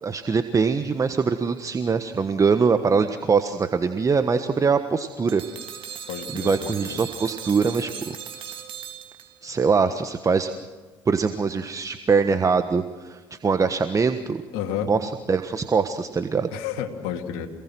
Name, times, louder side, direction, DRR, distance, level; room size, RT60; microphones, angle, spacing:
voice 1, 0.0-5.4 6.3-7.9 9.4-10.5 11.1-14.4 14.9-16.5, right 5 dB, 30° right, 9 dB, 1.4 m, -23 dB
sound 1, 5.3-9.6, right 8 dB, 50° right, 3.1 m, -38 dB
voice 2, 6.1-7.0 14.5-14.9 16.5-17.5, left 9 dB, 70° left, 3 dB, 2.8 m, -31 dB
27.0 x 18.5 x 6.2 m, 1.4 s
hypercardioid pair, 70°, 11 cm